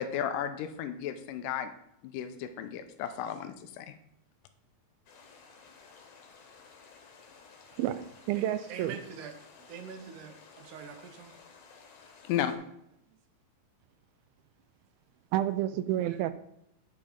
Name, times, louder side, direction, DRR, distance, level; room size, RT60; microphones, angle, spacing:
voice 1, 0.0-1.7 2.0-3.9 12.2-12.5, left 9 dB, 80° left, 2.2 m, -34 dB
sound 1, 5.1-12.6, left 5 dB, 65° left, 2.7 m, -55 dB
voice 2, 7.8-9.0 15.3-16.3, right 13 dB, 90° right, 2.4 m, -30 dB
voice 3, 8.3-9.4 9.7-11.4 16.0-16.2, right 7 dB, 70° right, 2.1 m, -44 dB
9.5 x 5.2 x 5.1 m
omnidirectional pair, 4.1 m